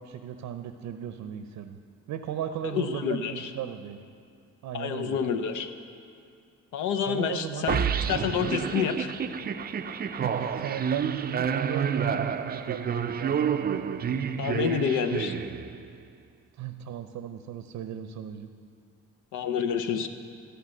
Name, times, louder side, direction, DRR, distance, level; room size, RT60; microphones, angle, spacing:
voice 1, 0.0-1.8 2.1-4.0 4.6-5.2 7.1-7.7 10.2-13.5 16.6-18.5, right 9 dB, 75° right, 8 dB, 0.6 m, -36 dB
voice 2, 2.6-3.5 4.7-5.7 6.7-9.1 14.4-15.4 19.3-20.1, left 7 dB, 80° left, 8 dB, 0.8 m, -28 dB
sound 1, 7.7-16.0, right 7 dB, 30° right, 0.4 m, -29 dB
13.5 x 5.7 x 7.7 m, 2.3 s
cardioid pair, 90°, 30 cm